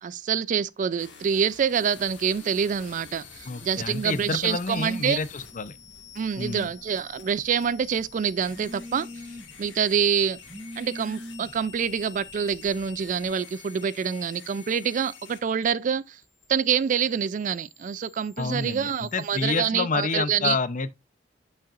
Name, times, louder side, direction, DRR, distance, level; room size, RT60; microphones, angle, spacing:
voice 1, 0.0-5.2 6.2-9.1 9.6-10.4 10.8-16.2 16.5-20.6, right 7 dB, 45° right, 0.3 m, -26 dB
sound 1, 1.0-19.5, left 7 dB, 85° left, 1.9 m, -48 dB
voice 2, 3.4-5.8 6.4-6.7 18.4-20.9, left 4 dB, 45° left, 0.6 m, -28 dB
Telephone, 5.2-13.3, equal, 30° right, 1.5 m, -46 dB
8.7 x 5.7 x 2.4 m
head